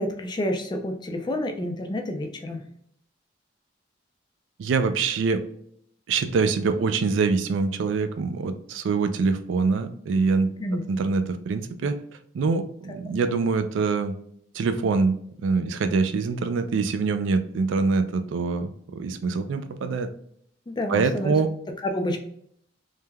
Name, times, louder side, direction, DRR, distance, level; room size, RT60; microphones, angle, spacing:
voice 1, 0.0-2.6 10.6-10.8 20.7-21.4 21.9-22.2, left 1 dB, 25° left, 5 dB, 0.3 m, -29 dB
voice 2, 4.6-5.4 6.1-10.5 10.9-12.0 12.3-14.2 14.5-20.1 20.9-21.5, right 4 dB, 85° right, 10 dB, 0.3 m, -24 dB
3.2 x 2.1 x 2.2 m, 0.67 s
head